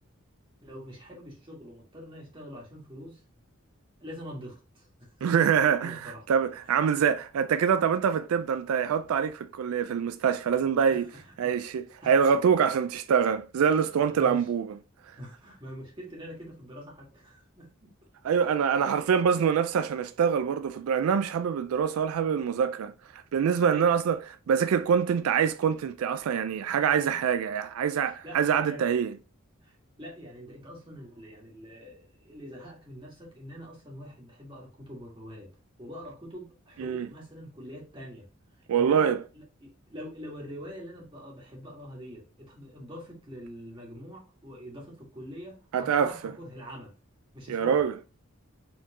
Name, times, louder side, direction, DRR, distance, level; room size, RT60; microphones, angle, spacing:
voice 1, 0.6-3.2 4.0-6.3 6.6-6.8 10.9-11.6 12.0-12.5 13.7-14.5 15.2-17.9 18.4-18.5 23.7-23.9 27.9-28.8 29.6-35.5 35.8-38.3 38.7-46.9 47.3-47.8, equal, 25° right, 1.8 m, -45 dB
voice 2, 5.2-11.1 11.4-14.7 18.2-22.9 23.3-24.2 24.5-29.1 36.8-37.1 38.7-39.2 45.7-46.1 47.5-47.9, right 7 dB, 85° right, 0.3 m, -25 dB
4.6 x 3.7 x 2.9 m
head